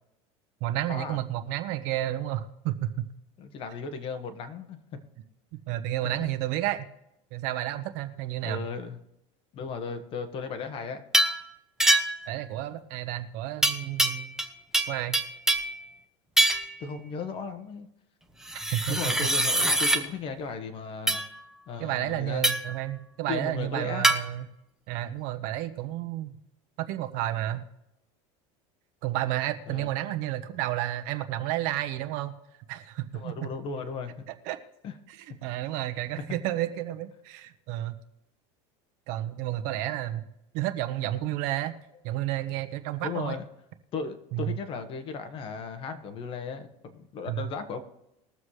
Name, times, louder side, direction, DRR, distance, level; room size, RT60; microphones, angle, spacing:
voice 1, 0.6-3.1 5.7-6.9 7.3-8.7 12.3-14.4 14.9-15.2 18.7-19.1 21.8-24.5 24.9-26.4 26.8-27.7 29.0-32.3 32.7-33.3 34.4-34.6 35.1-37.9 39.1-40.3 40.5-41.7 42.0-43.4 44.3-44.6 47.3-47.5, right 14 dB, 60° right, 10 dB, 1.2 m, -31 dB
voice 2, 3.4-5.0 6.0-6.1 8.4-9.0 9.5-11.0 16.8-17.9 18.9-21.2 21.7-22.5 23.3-24.1 29.7-29.9 33.1-34.1 34.8-34.9 36.2-36.3 43.0-43.4 43.9-47.8, left 5 dB, 35° left, 8 dB, 1.4 m, -36 dB
sound 1, 11.1-11.4 11.8-12.3 13.6-14.5 14.7-15.8 16.4-16.7 18.5-20.0 21.1-21.3 22.4-22.7 24.0-24.2, right 1 dB, 5° right, 1.0 m, -24 dB
21.5 x 7.3 x 3.3 m, 0.85 s
supercardioid pair, 145°, 15 cm